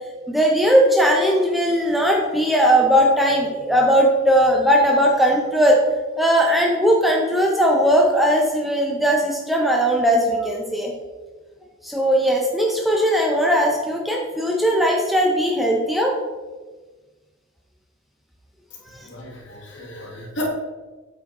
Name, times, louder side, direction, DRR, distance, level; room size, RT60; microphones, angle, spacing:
voice 1, 0.3-5.8 6.2-10.9 11.8-16.1 18.9-19.0, equal, ahead, -1 dB, 0.7 m, -18 dB
voice 2, 19.0-20.5, equal, 55° left, -1 dB, 1.5 m, -32 dB
8.0 x 6.1 x 3.1 m, 1.3 s
head